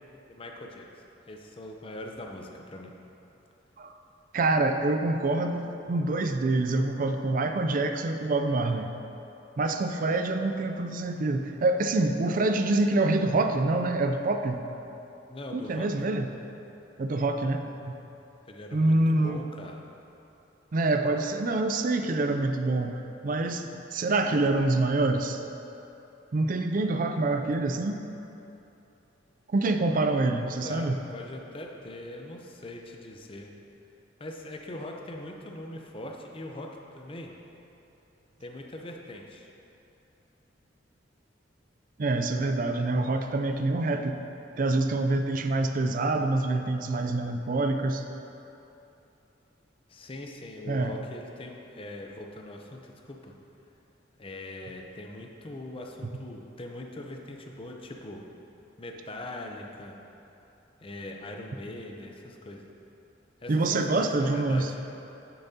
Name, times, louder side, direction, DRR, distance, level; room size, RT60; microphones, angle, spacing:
voice 1, 0.3-2.9 15.3-15.9 18.5-19.8 30.6-33.5 34.2-37.3 38.4-39.5 49.9-53.3 54.2-58.2 58.8-60.0 60.8-62.7 63.4-64.8, left 1 dB, 30° left, 1 dB, 0.6 m, -41 dB
voice 2, 4.3-8.9 9.6-14.6 15.5-16.3 17.0-17.9 18.7-19.4 20.7-25.4 26.3-28.0 29.5-31.0 42.0-44.2 44.6-48.0 50.7-50.9 63.5-64.7, right 2 dB, 45° right, 6 dB, 0.4 m, -26 dB
9.7 x 6.9 x 2.8 m, 3.0 s
head